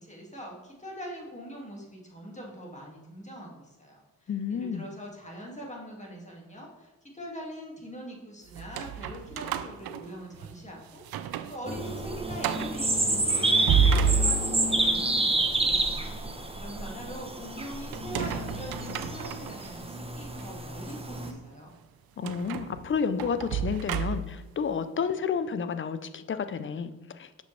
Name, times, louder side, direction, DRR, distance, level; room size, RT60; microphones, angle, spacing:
voice 1, 0.0-15.9 16.3-21.8, equal, 20° left, -1 dB, 2.1 m, -43 dB
voice 2, 4.3-4.9 22.2-27.3, left 6 dB, 35° left, 12 dB, 0.5 m, -31 dB
sound 1, 8.5-10.6 11.0-11.6 11.9-12.0 12.4-12.8 13.4-14.8 17.9-19.7 20.3-20.5 22.2-24.5, right 6 dB, 75° right, 0.5 m, -30 dB
sound 2, 11.7-21.3, right 2 dB, 15° right, 0.9 m, -29 dB
6.2 x 5.3 x 3.3 m, 1.1 s
supercardioid pair, 50°, 36 cm